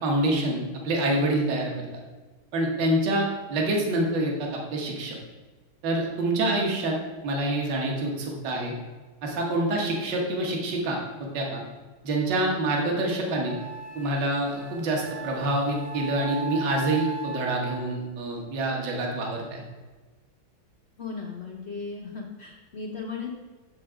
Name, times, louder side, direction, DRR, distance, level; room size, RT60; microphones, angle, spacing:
voice 1, 0.0-1.9 2.5-5.2 5.8-7.0 7.2-8.7 9.2-11.6 12.0-13.6 14.0-19.6, right 1 dB, 65° right, 0 dB, 1.9 m, -26 dB
Wind instrument woodwind instrument, 12.8-12.9 13.4-18.1, right 5 dB, 80° right, 2.4 m, -38 dB
voice 2, 21.0-23.3, left 4 dB, 70° left, 0 dB, 0.6 m, -36 dB
7.0 x 6.3 x 5.0 m, 1.3 s
omnidirectional pair, 2.2 m